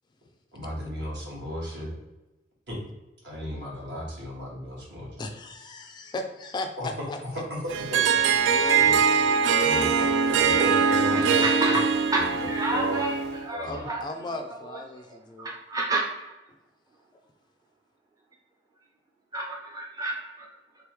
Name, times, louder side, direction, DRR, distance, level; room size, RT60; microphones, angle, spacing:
voice 1, 0.5-1.9 2.7-2.8 3.2-5.3 6.8-7.1 7.5-9.0 9.5-11.8 12.1-13.1 13.5-13.8, equal, 65° right, -4 dB, 1.4 m, -35 dB
voice 2, 5.2-7.4 8.4-10.2 13.6-15.5, left 2 dB, 25° left, 5 dB, 0.3 m, -37 dB
Harp, 7.7-13.5, right 6 dB, 80° right, 0.3 m, -22 dB
voice 3, 11.0-11.7 12.1-12.2 12.5-13.1 13.5-14.0 15.4-16.3 19.3-20.5, right 2 dB, 20° right, -2 dB, 0.6 m, -30 dB
3.5 x 3.4 x 3.0 m, 1.0 s
head